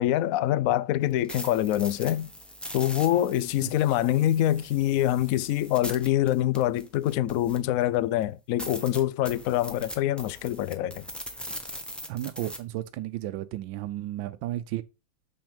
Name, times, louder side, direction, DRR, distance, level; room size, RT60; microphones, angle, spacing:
voice 1, 0.0-2.3 2.7-11.1, left 13 dB, 80° left, 0.7 m, -25 dB
sound 1, 1.0-7.8 8.2-8.3 8.6-12.6, equal, ahead, 1.1 m, -41 dB
voice 2, 12.1-14.8, right 14 dB, 85° right, 1.3 m, -33 dB
7.2 x 5.9 x 5.1 m
omnidirectional pair, 2.0 m